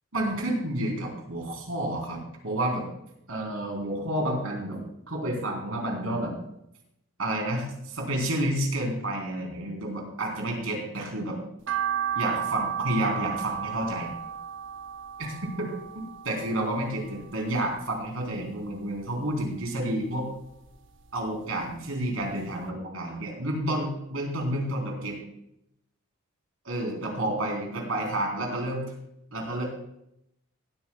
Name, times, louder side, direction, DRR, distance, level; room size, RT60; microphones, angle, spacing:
voice 1, 0.1-2.9 3.3-4.8 5.1-6.3 7.2-11.4 12.2-14.1 15.2-20.3 21.1-25.2 26.6-28.9 29.3-29.8, right 1 dB, 80° right, 0 dB, 4.1 m, -30 dB
sound 1, 11.7-18.0 18.3-19.5 19.8-21.3 21.6-21.7 22.2-22.3 22.5-22.6, right 9 dB, 60° right, 0.8 m, -34 dB
17.5 x 13.0 x 2.4 m, 0.80 s
head